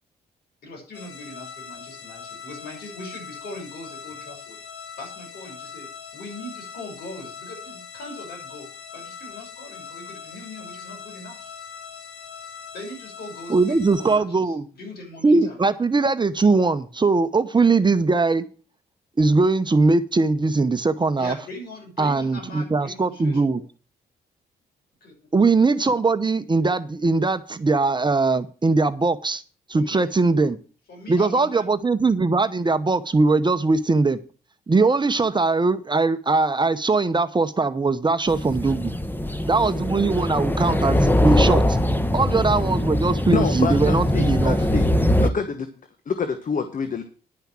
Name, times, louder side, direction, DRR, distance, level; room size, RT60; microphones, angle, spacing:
voice 1, 0.6-4.6 5.0-5.9 6.1-11.5 12.7-15.6 21.2-23.6 25.0-25.1 29.7-30.1 30.9-31.6, left 1 dB, 70° left, 0 dB, 6.4 m, -40 dB
sound 1, 0.9-14.2, left 7 dB, 85° left, 2.3 m, -41 dB
voice 2, 13.5-14.6 15.2-18.4 19.2-21.3 22.0-23.6 25.3-29.4 29.7-30.6 31.1-34.2 34.7-38.9 39.5-41.8 42.1-44.6, right 3 dB, 25° right, 11 dB, 0.9 m, -20 dB
sound 2, 38.3-45.3, left 1 dB, 10° left, 1.2 m, -22 dB
voice 3, 43.3-44.9 45.2-45.7 46.1-47.0, left 5 dB, 50° left, 8 dB, 1.3 m, -26 dB
10.5 x 5.6 x 7.3 m, 0.38 s
supercardioid pair, 60°, 17 cm